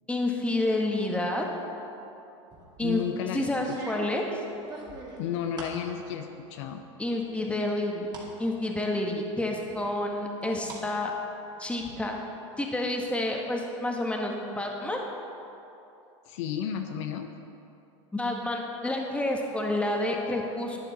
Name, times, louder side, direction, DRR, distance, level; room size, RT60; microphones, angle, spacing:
voice 1, 0.1-1.4 2.8-3.0 3.3-4.2 7.0-8.1 8.4-11.1 11.6-12.1 12.6-15.0 18.1-20.9, left 1 dB, 5° left, 0 dB, 1.4 m, -29 dB
sound 1, 2.5-2.9 3.6-5.8 6.3-6.8 7.2-8.3 8.7-8.8 9.7-10.8 11.2-11.9, right 2 dB, 25° right, 2.4 m, -44 dB
voice 2, 2.8-3.8 5.2-6.8 16.3-17.3, left 8 dB, 70° left, 6 dB, 0.8 m, -33 dB
11.5 x 9.1 x 4.1 m, 2.8 s
hypercardioid pair, 105°, 16 cm